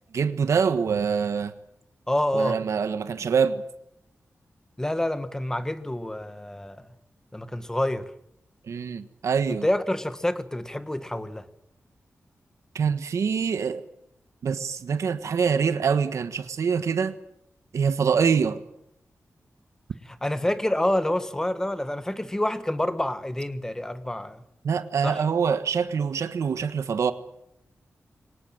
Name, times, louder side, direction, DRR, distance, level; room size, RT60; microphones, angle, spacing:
voice 1, 0.1-1.5 2.3-3.6 8.7-9.7 12.7-13.8 14.4-17.1 17.7-18.6 24.6-27.1, right 6 dB, 85° right, 1.4 m, -25 dB
voice 2, 2.1-2.6 4.8-6.9 7.3-8.1 9.5-11.4 20.2-24.4 25.0-25.2, left 1 dB, 10° left, 1.5 m, -27 dB
23.5 x 19.0 x 8.9 m
wide cardioid pair, 125°, 5 cm